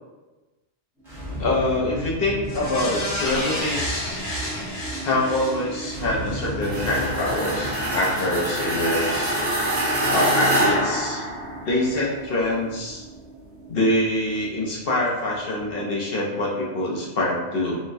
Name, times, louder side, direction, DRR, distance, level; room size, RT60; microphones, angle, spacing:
sound 1, 1.0-15.9, right 1 dB, ahead, 1.0 m, -36 dB
voice 1, 1.4-4.2 5.0-9.4 10.1-11.2 11.6-13.0 13.7-17.8, left 1 dB, 60° left, -3 dB, 0.8 m, -25 dB
sound 2, 2.4-7.0 7.4-7.5, equal, 80° left, 1.1 m, -31 dB
sound 3, 6.6-11.8, right 1 dB, 55° right, 1.1 m, -25 dB
3.9 x 2.1 x 2.5 m, 1.1 s
omnidirectional pair, 1.2 m